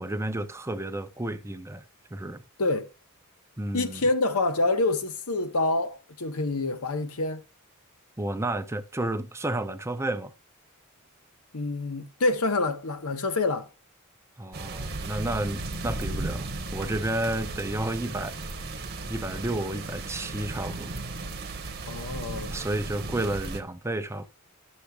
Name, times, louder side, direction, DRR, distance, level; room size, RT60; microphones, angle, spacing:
voice 1, 0.0-1.8 2.1-2.4 3.6-4.1 8.2-10.3 14.4-18.4 19.1-20.9 22.5-24.3, right 1 dB, 10° right, 0.5 m, -31 dB
voice 2, 3.7-7.4 11.5-13.7 21.9-22.5, left 2 dB, 85° left, 1.0 m, -27 dB
sound 1, 14.5-23.6, right 2 dB, 45° right, 1.0 m, -35 dB
11.5 x 6.4 x 2.4 m
head